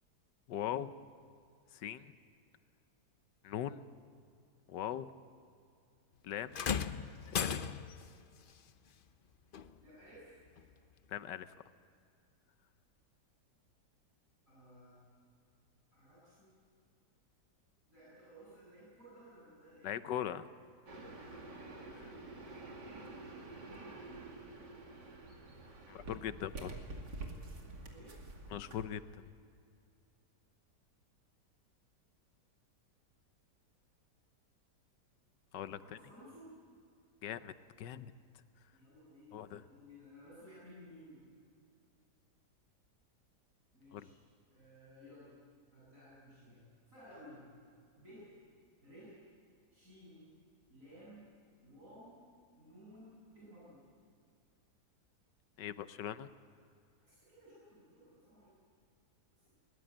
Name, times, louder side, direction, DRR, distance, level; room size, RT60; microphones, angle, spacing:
voice 1, 0.5-0.9 1.7-2.2 3.4-3.9 4.7-5.1 6.2-6.6 7.4-7.6 11.1-11.5 19.8-20.5 21.9-22.1 25.9-26.7 28.5-29.3 35.5-35.8 37.2-38.1 39.3-39.6 43.9-44.1 55.6-56.3, left 10 dB, 85° left, 13 dB, 1.4 m, -40 dB
sound 1, 6.5-8.1 9.5-9.7 10.6-10.7, left 7 dB, 65° left, 0.5 m, -36 dB
voice 2, 9.8-10.4 14.5-15.0 15.9-16.6 17.9-19.9 22.0-22.9 27.9-28.1 35.8-36.5 38.6-41.2 43.7-44.2 44.5-45.3 45.7-47.5 48.0-48.4 48.8-49.2 49.7-50.3 50.7-51.3 51.6-52.2 52.6-53.9 57.0-58.5 59.3-59.5, equal, 50° right, -8 dB, 8.6 m, -57 dB
sound 2, 20.9-28.8, right 2 dB, 85° right, 3.0 m, -48 dB
21.5 x 19.5 x 8.9 m, 2.3 s
omnidirectional pair, 1.8 m